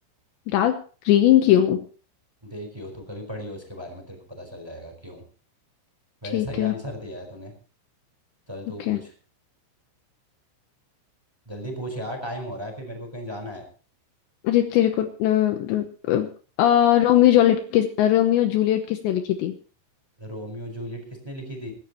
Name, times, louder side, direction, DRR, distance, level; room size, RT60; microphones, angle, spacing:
voice 1, 0.5-0.8 1.0-1.9 6.3-6.7 8.8-9.0 14.4-16.3 16.6-19.5, left 12 dB, 75° left, 7 dB, 3.0 m, -20 dB
voice 2, 2.4-5.2 6.2-7.5 8.5-9.1 11.5-13.6 20.2-21.7, equal, 5° right, 4 dB, 3.8 m, -36 dB
24.0 x 12.0 x 3.0 m, 0.38 s
omnidirectional pair, 5.6 m